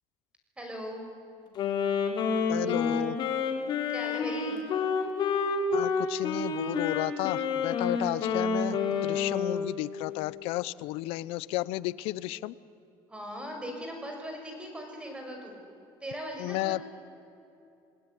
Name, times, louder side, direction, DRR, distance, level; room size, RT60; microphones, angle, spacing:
voice 1, 0.6-1.0 3.9-4.6 7.8-8.0 13.1-15.6 16.0-16.8, equal, 10° right, 2 dB, 6.2 m, -39 dB
Wind instrument woodwind instrument, 1.6-9.8, left 5 dB, 50° left, 3.9 m, -29 dB
voice 2, 2.5-3.2 5.7-12.5 16.4-16.8, left 18 dB, 80° left, 19 dB, 0.8 m, -32 dB
29.0 x 19.5 x 9.9 m, 2.8 s
cardioid pair, 135°, 10 cm